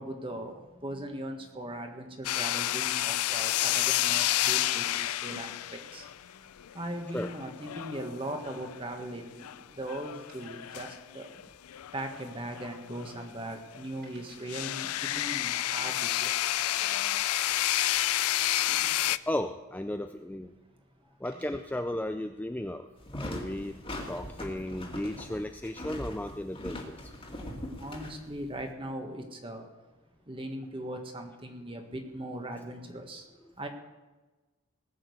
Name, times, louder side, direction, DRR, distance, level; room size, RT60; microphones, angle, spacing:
voice 1, 0.0-6.4 6.7-11.3 11.9-16.4 27.8-29.7 30.3-33.3 33.6-33.7, right 1 dB, 25° right, 1.6 m, -39 dB
sound 1, 2.2-8.9 9.4-9.6 9.9-13.4 13.7-13.8 14.5-19.2, left 14 dB, 80° left, 0.4 m, -30 dB
sound 2, 10.3-11.3 11.5-11.6 12.2-12.6 13.0-13.1 13.7-13.8 14.0-15.0 16.1-16.2 16.9-17.0 17.8-18.7 20.5-20.7 21.1-21.9, right 3 dB, 45° right, 3.4 m, -59 dB
voice 2, 19.3-20.5 21.2-22.9 23.1-23.8 24.1-27.1 33.4-33.5, left 1 dB, 5° left, 0.4 m, -35 dB
sound 3, 23.0-28.7, left 1 dB, 25° left, 2.1 m, -41 dB
19.5 x 6.5 x 8.0 m
head